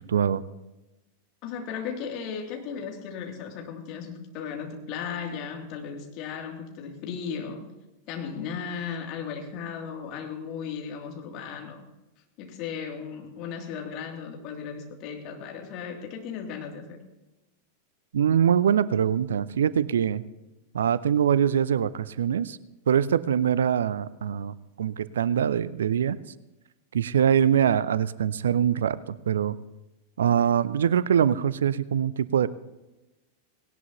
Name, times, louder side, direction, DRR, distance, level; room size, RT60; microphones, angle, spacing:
voice 1, 0.1-0.4 18.1-20.2 20.7-22.6 22.9-26.2 26.9-29.6 30.2-32.5, right 8 dB, 65° right, 18 dB, 0.5 m, -23 dB
voice 2, 1.4-7.6 8.1-11.8 12.4-17.0, left 6 dB, 40° left, 2 dB, 2.8 m, -36 dB
18.5 x 18.0 x 2.9 m, 1.0 s
figure-of-eight pair, 90°, 0 cm